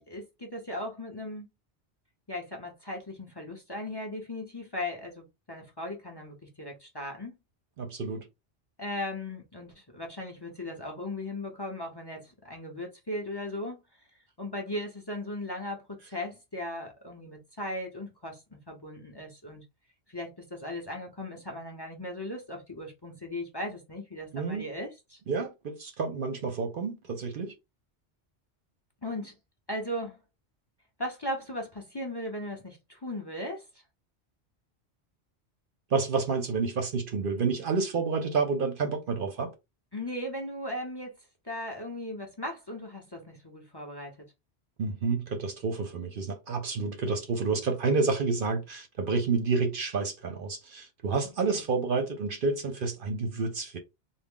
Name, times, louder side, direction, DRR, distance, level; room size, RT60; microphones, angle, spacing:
voice 1, 0.0-1.5 2.3-7.3 8.8-13.8 14.4-19.6 20.1-25.2 29.0-29.3 29.7-30.2 31.0-33.6 39.9-41.1 41.4-44.2 51.2-51.6, left 1 dB, 25° left, 0.7 m, -37 dB
voice 2, 7.8-8.3 24.3-24.7 25.3-27.5 35.9-39.5 44.8-53.8, right 4 dB, 60° right, 0.7 m, -29 dB
3.5 x 2.1 x 3.5 m
omnidirectional pair, 1.1 m